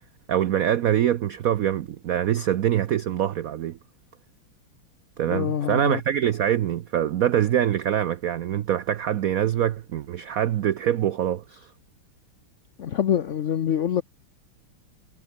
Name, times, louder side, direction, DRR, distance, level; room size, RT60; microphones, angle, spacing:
voice 1, 0.3-3.8 5.2-11.7, right 10 dB, 80° right, 0.7 m, -24 dB
voice 2, 5.3-6.0 12.8-14.0, left 9 dB, 55° left, 0.8 m, -25 dB
omnidirectional pair, 2.3 m